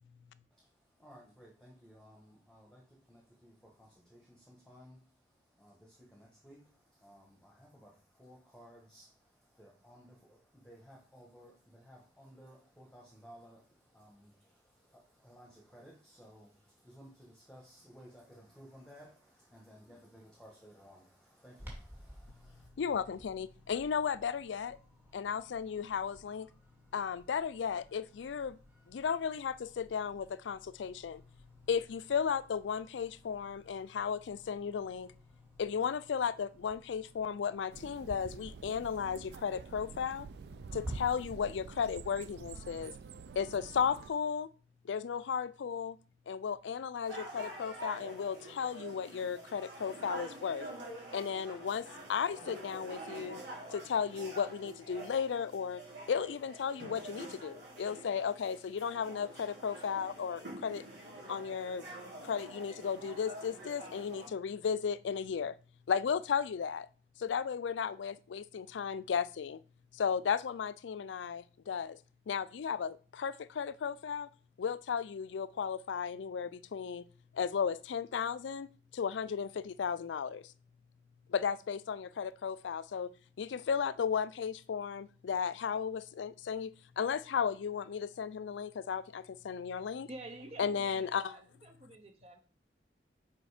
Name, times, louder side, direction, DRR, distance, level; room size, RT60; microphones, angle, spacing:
voice 1, 1.0-2.8 3.1-5.0 5.6-6.6 6.9-22.7, equal, 5° left, -3 dB, 1.2 m, -57 dB
Clock, 21.6-41.0, equal, 10° right, 2.3 m, -55 dB
voice 2, 22.8-24.8 25.1-26.5 26.9-28.6 28.9-31.2 31.7-35.1 35.6-40.3 40.7-42.9 43.4-44.5 44.8-46.0 46.3-50.7 51.1-53.4 53.7-55.8 56.1-60.8 61.3-61.8 62.2-65.5 65.9-66.9 67.2-69.6 69.9-72.0 72.3-74.3 74.6-77.0 77.3-78.7 78.9-80.5 81.3-83.1 83.4-90.1 90.6-91.3, left 7 dB, 85° left, 17 dB, 0.4 m, -35 dB
sound 1, 37.7-44.1, right 5 dB, 60° right, 0.3 m, -48 dB
sound 2, 47.0-64.3, right 1 dB, 80° right, 2.7 m, -47 dB
voice 3, 90.1-92.4, right 2 dB, 35° right, 5 dB, 0.7 m, -49 dB
5.2 x 5.1 x 4.9 m, 0.40 s
head